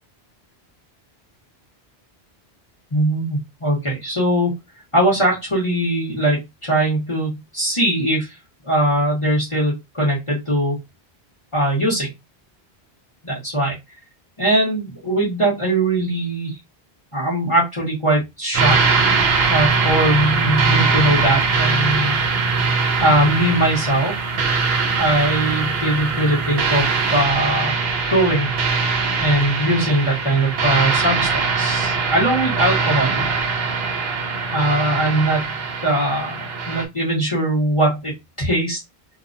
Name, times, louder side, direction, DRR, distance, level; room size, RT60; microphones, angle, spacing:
voice 1, 2.9-4.5 4.9-8.3 8.6-10.8 11.5-12.1 13.2-13.7 14.4-16.6 17.1-19.0 19.5-22.2 23.0-24.1 25.0-27.8 28.1-28.5 29.2-33.3 34.5-35.5 35.8-38.1 38.4-38.8, right 1 dB, 30° left, -5 dB, 1.1 m, -20 dB
sound 1, 18.5-36.9, right 4 dB, 70° right, 0.8 m, -21 dB
2.6 x 2.2 x 2.5 m, 0.20 s
omnidirectional pair, 1.1 m